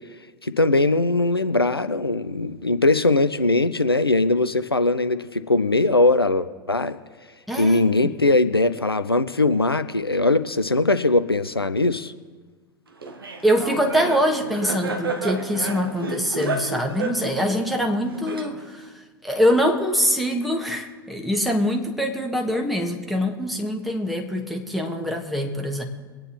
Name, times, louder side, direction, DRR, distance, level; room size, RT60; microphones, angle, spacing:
voice 1, 0.4-7.0 7.6-12.1, left 2 dB, 90° left, 11 dB, 0.5 m, -20 dB
voice 2, 7.5-8.2 13.4-18.9 19.2-25.8, equal, ahead, 2 dB, 1.5 m, -24 dB
Laughter, 13.0-18.9, right 3 dB, 75° right, 1.3 m, -31 dB
24.0 x 9.5 x 3.1 m, 1.4 s
figure-of-eight pair, 90°, 12 cm